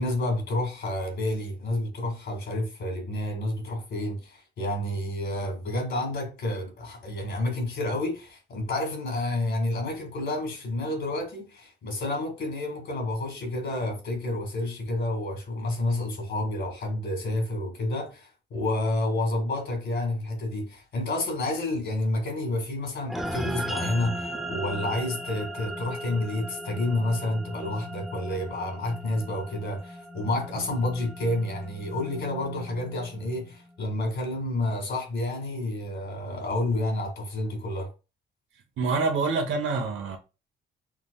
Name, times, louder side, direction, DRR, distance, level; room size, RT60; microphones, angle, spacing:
voice 1, 0.0-37.9, left 1 dB, 65° left, 2.2 m, -29 dB
sound 1, 23.1-33.7, equal, ahead, 0.6 m, -37 dB
voice 2, 38.8-40.2, right 4 dB, 80° right, 1.1 m, -26 dB
6.0 x 3.6 x 2.3 m
cardioid pair, 90°, 20 cm